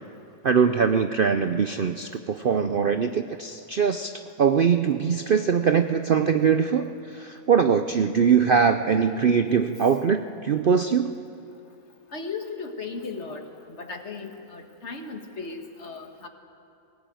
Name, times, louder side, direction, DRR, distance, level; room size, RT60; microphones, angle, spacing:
voice 1, 0.4-11.1, right 6 dB, 55° right, 8 dB, 0.6 m, -22 dB
voice 2, 12.1-13.4 13.8-16.3, left 4 dB, 50° left, 4 dB, 1.9 m, -36 dB
20.5 x 18.0 x 9.2 m, 2.6 s
omnidirectional pair, 1.5 m